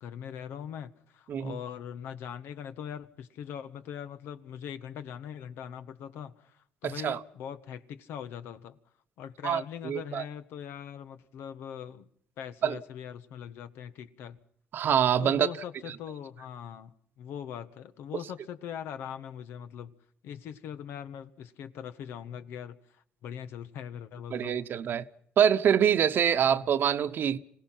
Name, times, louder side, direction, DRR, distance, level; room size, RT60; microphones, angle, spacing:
voice 1, 0.0-8.8 9.2-12.1 12.4-14.4 15.2-19.9 20.2-24.7 26.4-26.7, left 9 dB, 80° left, 1.4 m, -41 dB
voice 2, 6.8-7.2 9.4-10.2 12.6-12.8 14.7-15.5 24.3-25.0 25.4-27.4, right 8 dB, 65° right, 1.1 m, -25 dB
26.5 x 17.5 x 5.8 m
cardioid pair, 75°, 4 cm